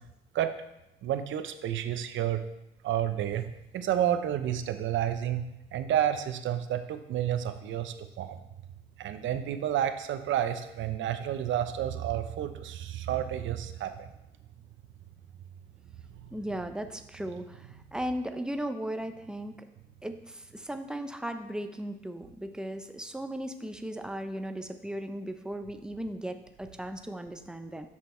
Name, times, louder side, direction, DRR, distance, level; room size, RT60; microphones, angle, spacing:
voice 1, 1.0-2.4 2.8-5.4 5.7-8.4 9.0-14.1 16.2-16.4 17.6-17.8, right 11 dB, 75° right, 9 dB, 0.7 m, -30 dB
voice 2, 16.3-19.6 20.0-27.9, right 1 dB, 5° right, 7 dB, 0.7 m, -37 dB
7.5 x 6.2 x 4.4 m, 0.89 s
cardioid pair, 90°, 20 cm